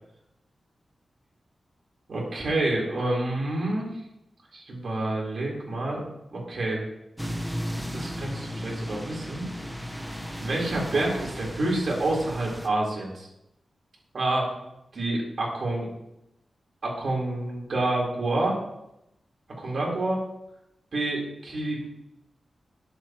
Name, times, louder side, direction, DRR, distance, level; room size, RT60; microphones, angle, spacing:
voice 1, 2.1-3.9 4.5-6.0 6.3-6.8 7.9-9.4 10.4-13.3 14.1-14.5 14.9-15.9 16.8-18.6 19.6-20.3 20.9-21.8, right 2 dB, 55° right, -2 dB, 3.9 m, -28 dB
sound 1, 7.2-12.7, equal, ahead, 1.1 m, -35 dB
20.5 x 7.9 x 3.1 m, 0.86 s
wide cardioid pair, 135°, 0 cm